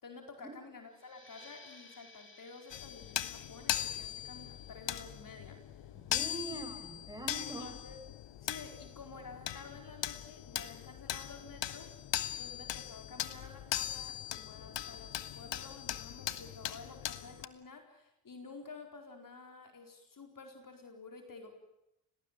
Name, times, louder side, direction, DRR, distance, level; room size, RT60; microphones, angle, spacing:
voice 1, 0.0-5.6 6.5-6.6 7.4-8.0 8.4-11.9 12.4-21.5, left 4 dB, 40° left, 4 dB, 4.4 m, -51 dB
sound 1, 0.9-6.1, left 2 dB, 25° left, 3.5 m, -59 dB
sound 2, 2.7-17.5, left 12 dB, 60° left, 1.4 m, -40 dB
voice 2, 5.9-7.7, right 2 dB, 10° right, 7 dB, 6.5 m, -43 dB
28.0 x 18.5 x 9.2 m, 0.86 s
hypercardioid pair, 50°, 49 cm